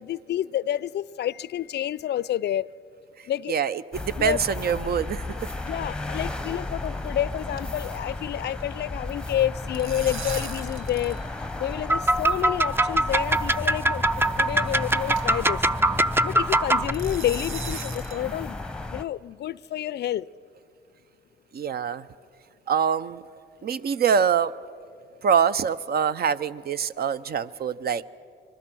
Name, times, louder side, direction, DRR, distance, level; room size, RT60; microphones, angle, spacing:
voice 1, 0.0-2.7 3.3-3.6 4.2-4.4 5.7-11.2 11.6-15.6 16.2-18.6 18.9-20.3, left 12 dB, 60° left, 0.4 m, -29 dB
voice 2, 3.2-5.2 21.5-22.1 22.7-23.2 23.6-24.5 25.2-28.1, right 7 dB, 50° right, 0.7 m, -25 dB
sound 1, 3.9-19.0, left 2 dB, 5° left, 0.9 m, -33 dB
sound 2, 5.5-5.7 5.9-6.1 6.4-6.5 6.9-7.1 7.3-8.6 9.5-11.2 11.5-11.6 12.5-12.6 13.4-13.6 14.1-14.2 14.6-14.7 15.2-15.4 16.9-18.2, right 5 dB, 80° right, 1.7 m, -39 dB
sound 3, 11.9-16.9, right 1 dB, 10° right, 0.5 m, -23 dB
26.0 x 21.0 x 6.2 m
cardioid pair, 90°, 20 cm